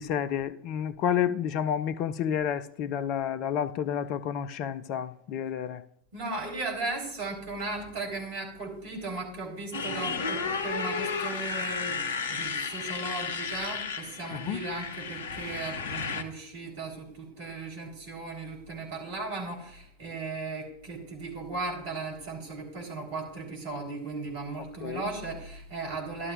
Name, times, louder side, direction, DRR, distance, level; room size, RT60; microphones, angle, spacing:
voice 1, 0.0-5.8 14.3-14.6 24.8-25.0, left 9 dB, 40° left, 0.4 m, -30 dB
voice 2, 6.1-26.3, right 3 dB, 50° right, 4.2 m, -36 dB
Motorcycle, 9.7-16.2, left 5 dB, 60° left, 0.9 m, -33 dB
13.5 x 12.0 x 2.6 m
figure-of-eight pair, 90°, 0 cm